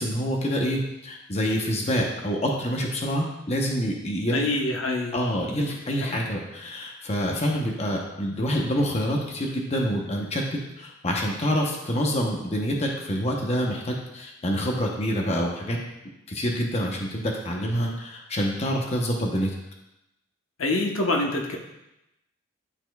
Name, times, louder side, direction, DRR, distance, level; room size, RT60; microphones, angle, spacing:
voice 1, 0.0-4.4 5.1-15.8 16.3-19.5, equal, 30° left, 0 dB, 0.8 m, -27 dB
voice 2, 4.3-5.2 6.0-6.2 20.6-21.6, left 2 dB, 85° left, 1 dB, 1.0 m, -25 dB
11.5 x 4.2 x 2.3 m, 0.90 s
head